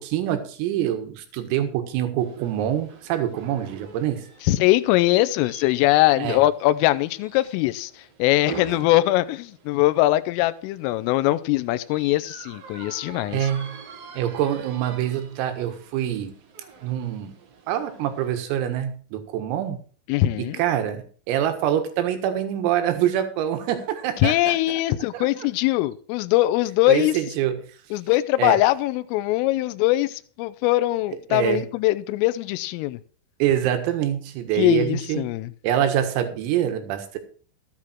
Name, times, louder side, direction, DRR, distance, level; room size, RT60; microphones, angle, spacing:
voice 1, 0.0-4.3 6.2-6.4 13.3-13.8 14.2-16.3 16.8-17.3 17.7-19.8 20.4-24.6 25.1-25.5 26.9-27.6 28.4-28.6 31.3-31.6 33.4-35.3 35.6-37.2, right 10 dB, 85° right, 4.2 m, -25 dB
sound 1, 2.2-18.4, right 6 dB, 65° right, 1.5 m, -45 dB
voice 2, 4.4-13.5 20.1-20.6 24.2-27.2 27.9-33.0 34.6-35.5, left 17 dB, 85° left, 3.3 m, -21 dB
14.5 x 9.8 x 4.5 m
omnidirectional pair, 5.9 m